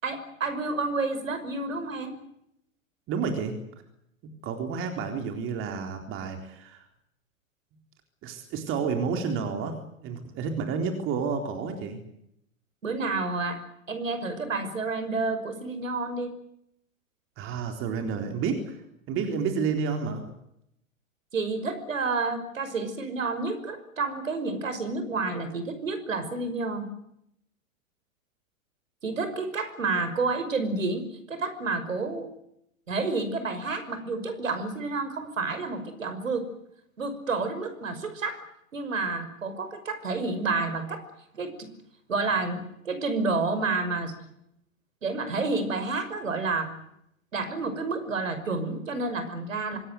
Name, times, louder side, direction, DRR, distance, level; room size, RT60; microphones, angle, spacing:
voice 1, 0.0-2.1 12.8-13.6 13.9-16.3 21.3-26.9 29.0-32.3 32.9-36.5 37.0-38.4 38.7-41.0 41.3-41.7 42.1-44.1 45.0-46.7 47.3-49.8, right 3 dB, 70° right, 10 dB, 5.8 m, -30 dB
voice 2, 3.1-3.6 4.2-6.9 8.2-12.0 17.4-18.8 19.1-20.2, right 5 dB, 30° right, 5 dB, 4.0 m, -30 dB
26.0 x 18.5 x 9.3 m, 0.76 s
figure-of-eight pair, 100°, 41 cm